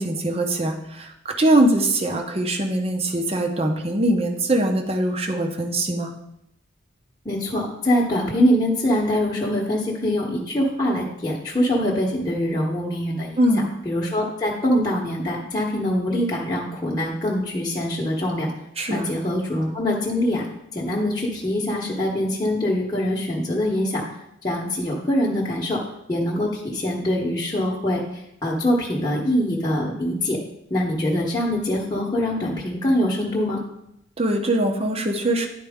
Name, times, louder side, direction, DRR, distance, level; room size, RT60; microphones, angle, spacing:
voice 1, 0.0-6.1 13.4-13.7 18.8-19.1 34.2-35.5, right 1 dB, 30° right, 5 dB, 0.8 m, -22 dB
voice 2, 7.2-13.4 13.8-18.5 18.9-20.5 20.7-24.0 24.4-25.8 26.1-30.4 30.7-33.6, left 1 dB, 20° left, -5 dB, 1.0 m, -23 dB
10.5 x 4.4 x 3.6 m, 0.79 s
head